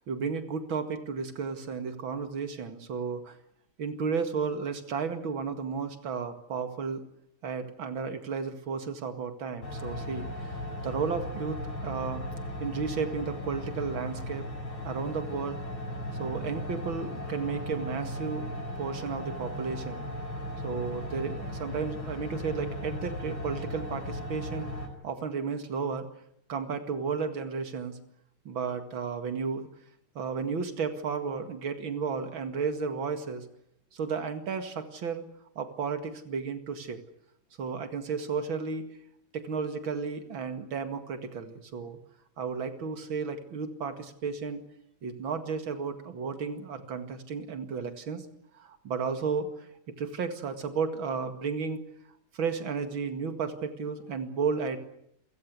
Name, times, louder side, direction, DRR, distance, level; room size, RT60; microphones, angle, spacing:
voice 1, 0.1-3.4 3.8-7.0 7.4-10.5 10.8-12.3 12.6-14.5 14.8-15.6 16.2-18.5 18.8-20.1 20.6-24.7 25.0-26.1 26.5-28.0 28.4-29.7 30.2-33.5 33.9-35.2 35.6-37.0 37.6-38.8 39.3-42.0 42.4-44.6 45.0-48.3 48.6-49.7 50.0-51.8 52.3-54.8, right 5 dB, 70° right, 8 dB, 2.8 m, -33 dB
sound 1, 9.6-24.9, left 1 dB, 90° left, 5.1 m, -37 dB
28.5 x 16.0 x 9.7 m, 0.75 s
omnidirectional pair, 2.2 m